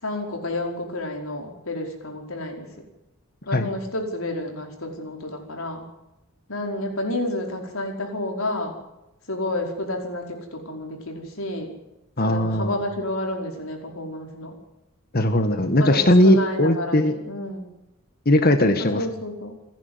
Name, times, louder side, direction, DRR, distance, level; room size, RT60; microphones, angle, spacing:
voice 1, 0.0-2.7 3.5-5.8 6.5-8.8 9.3-11.7 12.2-14.6 15.8-17.7 18.8-19.6, left 1 dB, 75° left, 2 dB, 5.2 m, -30 dB
voice 2, 12.2-12.7 15.1-17.1 18.2-19.0, left 1 dB, 45° left, 7 dB, 1.7 m, -19 dB
29.0 x 11.0 x 9.6 m, 0.95 s
head